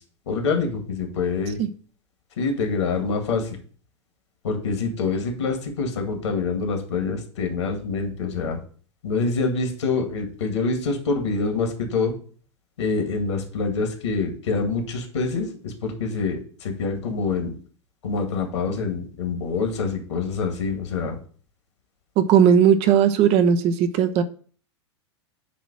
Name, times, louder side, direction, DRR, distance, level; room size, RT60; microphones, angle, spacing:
voice 1, 0.3-1.6 2.4-3.6 4.4-8.6 9.0-12.1 12.8-17.6 18.0-21.2, left 4 dB, 70° left, 4 dB, 2.0 m, -26 dB
voice 2, 22.2-24.2, right 8 dB, 40° right, 11 dB, 0.9 m, -17 dB
8.3 x 3.1 x 6.1 m, 0.43 s
figure-of-eight pair, 95°, 15 cm